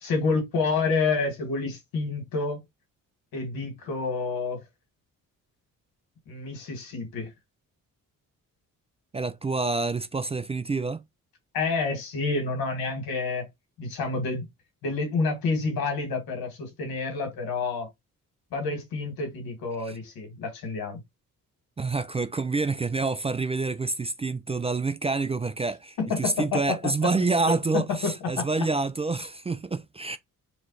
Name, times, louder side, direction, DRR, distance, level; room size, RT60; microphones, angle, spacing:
voice 1, 0.0-2.6 3.3-4.6 6.3-7.3 11.5-13.5 13.8-14.4 14.8-17.9 18.5-21.0 26.0-26.8 27.5-28.5, left 4 dB, 90° left, 1.8 m, -28 dB
voice 2, 9.1-11.0 19.8-20.0 21.8-30.2, right 3 dB, 20° right, 0.3 m, -27 dB
3.3 x 3.0 x 4.0 m
cardioid pair, 75°, 35 cm